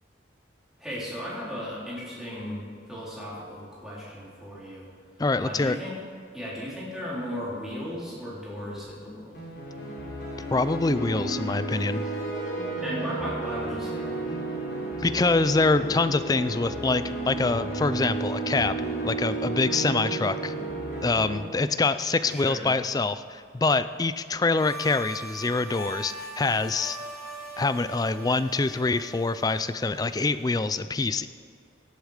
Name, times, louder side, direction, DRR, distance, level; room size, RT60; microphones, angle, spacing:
voice 1, 0.8-4.9 5.4-5.9 6.3-9.4 12.8-14.2 22.2-22.6, equal, 5° right, -8 dB, 3.8 m, -36 dB
voice 2, 5.2-5.8 10.5-12.0 15.0-18.8 19.0-20.5 21.0-27.0 27.6-31.3, left 3 dB, 20° left, 13 dB, 0.3 m, -25 dB
sound 1, 9.3-21.3, right 2 dB, 60° left, 3.6 m, -32 dB
sound 2, 24.6-30.4, right 1 dB, 35° left, 3.7 m, -41 dB
17.0 x 8.2 x 5.0 m, 2.3 s
head